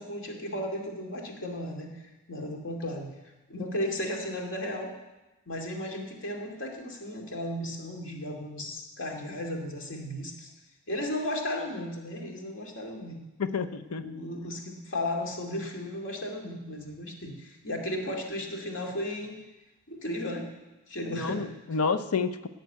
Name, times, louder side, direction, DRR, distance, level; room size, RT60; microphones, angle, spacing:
voice 1, 0.0-4.9 5.5-10.5 10.9-13.2 14.0-19.4 19.9-20.5 20.9-21.5, left 1 dB, 60° left, 1 dB, 2.5 m, -35 dB
voice 2, 13.4-14.0 21.1-22.5, left 5 dB, 85° left, 10 dB, 0.7 m, -29 dB
16.5 x 6.8 x 9.2 m, 1.0 s
head